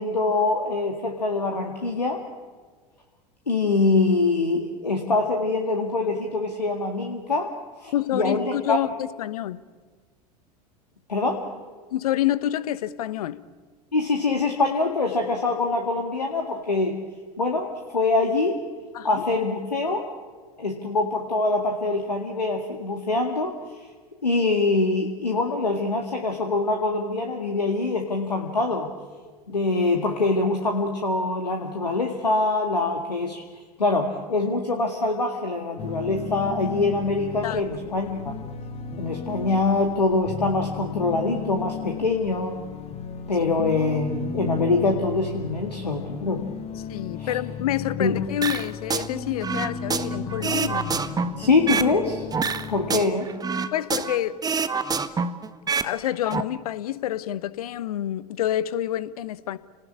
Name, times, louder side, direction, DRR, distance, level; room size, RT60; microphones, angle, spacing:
voice 1, 0.0-2.2 3.5-7.5 7.8-8.8 11.1-11.5 13.9-16.9 17.4-18.6 19.0-20.1 20.6-23.5 24.2-28.9 29.5-33.4 33.8-38.3 39.0-42.6 43.3-46.4 47.2-47.4 48.0-48.2 51.4-52.2 52.7-53.3, left 3 dB, 85° left, 3 dB, 2.1 m, -24 dB
voice 2, 7.9-9.6 11.9-13.4 18.9-19.2 37.4-37.6 46.9-51.0 53.7-54.4 55.8-59.6, left 12 dB, 65° left, 16 dB, 1.1 m, -28 dB
sound 1, 35.8-53.0, left 6 dB, 30° left, 1.8 m, -35 dB
sound 2, 48.4-49.1 49.4-51.9 52.3-54.2 54.4-55.9 56.2-56.4, right 5 dB, 20° right, 1.4 m, -26 dB
29.5 x 19.5 x 8.7 m, 1.5 s
figure-of-eight pair, 80°, 20 cm